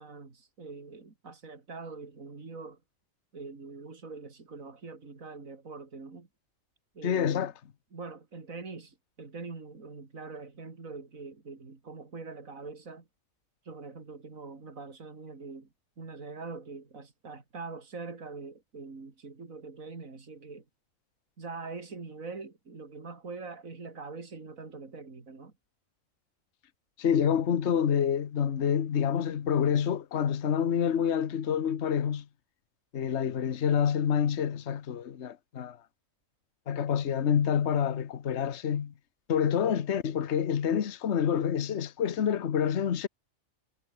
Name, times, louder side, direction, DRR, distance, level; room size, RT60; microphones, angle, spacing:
voice 1, 0.0-2.8 3.3-6.3 6.9-7.5 7.9-13.1 13.6-15.7 16.0-20.6 21.4-25.5 39.7-39.9, right 4 dB, 75° right, 3.4 m, -43 dB
voice 2, 7.0-7.5 27.0-32.2 32.9-35.8 36.7-38.9 39.3-43.1, left 8 dB, 55° left, 1.3 m, -27 dB
omnidirectional pair, 1.4 m